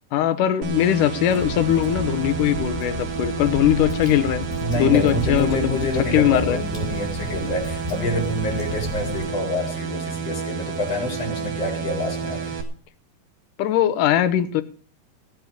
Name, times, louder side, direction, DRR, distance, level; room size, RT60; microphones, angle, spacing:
voice 1, 0.1-4.4 4.8-5.7 6.1-6.6 13.6-14.6, left 11 dB, 75° left, 11 dB, 2.5 m, -20 dB
sound 1, 0.6-12.6, right 6 dB, 75° right, 3.3 m, -31 dB
Water / Drip, 1.3-9.2, equal, 15° right, 3.9 m, -31 dB
voice 2, 4.6-12.6, left 1 dB, 45° left, 2 dB, 5.1 m, -27 dB
16.5 x 7.9 x 6.5 m, 0.41 s
omnidirectional pair, 3.9 m